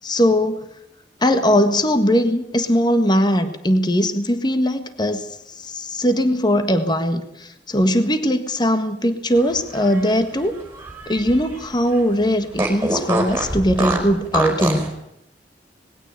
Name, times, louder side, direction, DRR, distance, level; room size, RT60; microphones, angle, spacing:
voice 1, 0.0-0.6 1.2-5.3 5.6-10.6 11.1-14.9, equal, 25° left, 9 dB, 1.5 m, -20 dB
Fart, 9.6-11.6 11.9-12.0 12.6-14.9, right 2 dB, 15° right, 5.2 m, -25 dB
20.5 x 16.5 x 9.0 m, 0.78 s
head